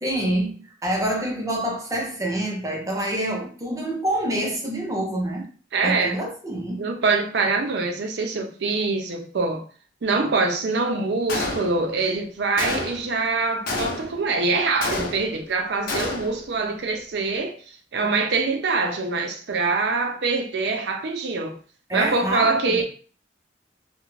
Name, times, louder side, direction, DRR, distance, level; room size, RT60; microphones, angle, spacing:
voice 1, 0.0-5.5 5.8-6.9 21.9-22.8, right 1 dB, 20° right, 0.6 m, -27 dB
voice 2, 5.7-6.2 6.8-9.6 10.0-17.6 17.9-21.6 21.9-22.8, right 3 dB, 65° right, 0.5 m, -24 dB
Gunshot gunfire, 11.3-12.0 12.6-13.1 13.7-14.3 14.8-15.5 15.9-16.5, left 2 dB, 50° left, 0.6 m, -29 dB
2.4 x 2.1 x 3.0 m
head